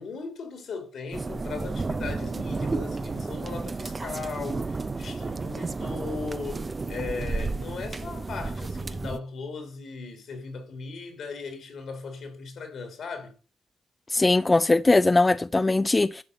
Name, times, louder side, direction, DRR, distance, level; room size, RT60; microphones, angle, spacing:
voice 1, 0.0-13.3, left 4 dB, 70° left, 3.1 m, -38 dB
sound 1, 1.1-9.2, right 3 dB, 35° right, 0.7 m, -32 dB
voice 2, 14.1-16.2, left 2 dB, 25° left, 0.5 m, -20 dB
11.0 x 5.2 x 6.8 m
supercardioid pair, 60°, 0 cm